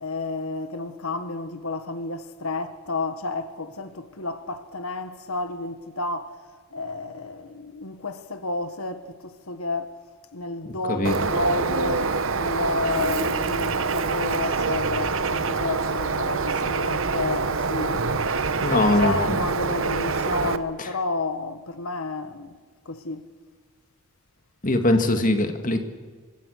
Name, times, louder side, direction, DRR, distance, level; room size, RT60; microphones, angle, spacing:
voice 1, 0.0-6.4 6.7-9.9 10.3-18.1 18.6-22.5 22.8-23.3, left 2 dB, 80° left, 1.6 m, -31 dB
Bird, 11.0-20.6, right 4 dB, 65° right, 1.1 m, -25 dB
voice 2, 18.6-19.1 24.6-25.8, left 1 dB, 35° left, 2.1 m, -21 dB
25.5 x 24.5 x 6.6 m
head